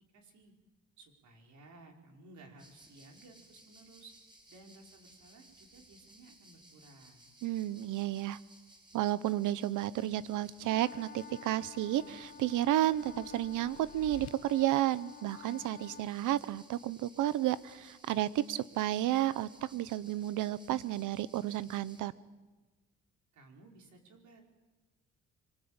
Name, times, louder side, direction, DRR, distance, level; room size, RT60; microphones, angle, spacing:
voice 1, 0.1-0.5 1.0-4.1 4.5-7.3 23.3-24.4, right 2 dB, 70° right, 2 dB, 5.3 m, -57 dB
sound 1, 2.6-22.0, right 1 dB, 15° right, 7.0 m, -60 dB
voice 2, 7.4-8.4 8.9-22.1, right 13 dB, 85° right, 17 dB, 1.0 m, -32 dB
sound 2, 10.6-16.1, left 7 dB, 30° left, 0.8 m, -51 dB
sound 3, 11.5-14.3, left 11 dB, 65° left, 1.3 m, -54 dB
25.5 x 21.0 x 9.0 m, 1.2 s
cardioid pair, 90°, 30 cm